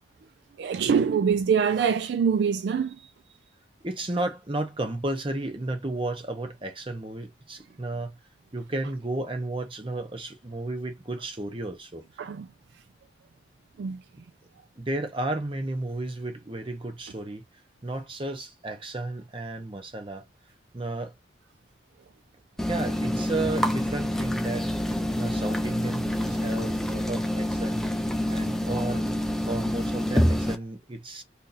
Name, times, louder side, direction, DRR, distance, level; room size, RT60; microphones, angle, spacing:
voice 1, 0.6-3.1 12.2-12.5 12.7-12.8 13.8-14.0, right 6 dB, 70° right, 0.3 m, -24 dB
voice 2, 3.8-8.2 8.5-12.0 14.8-17.4 17.8-20.2 20.7-21.1 22.7-24.7 25.1-27.9 28.3-29.0 29.4-31.2, right 2 dB, 30° right, 0.7 m, -33 dB
sound 1, 22.6-30.5, equal, ahead, 0.4 m, -27 dB
2.7 x 2.6 x 3.9 m
head